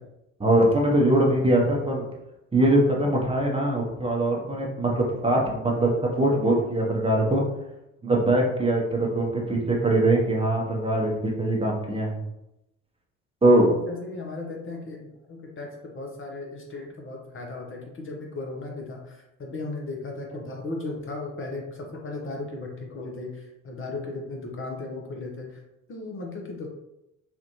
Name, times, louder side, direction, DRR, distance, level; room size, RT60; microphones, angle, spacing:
voice 1, 0.4-2.1 2.5-7.4 8.0-12.2 13.4-13.7, right 1 dB, 15° right, -2 dB, 0.9 m, -22 dB
voice 2, 13.7-25.6 25.9-26.7, left 2 dB, 35° left, 0 dB, 0.8 m, -36 dB
3.4 x 2.4 x 3.0 m, 0.87 s
hypercardioid pair, 55°, 35 cm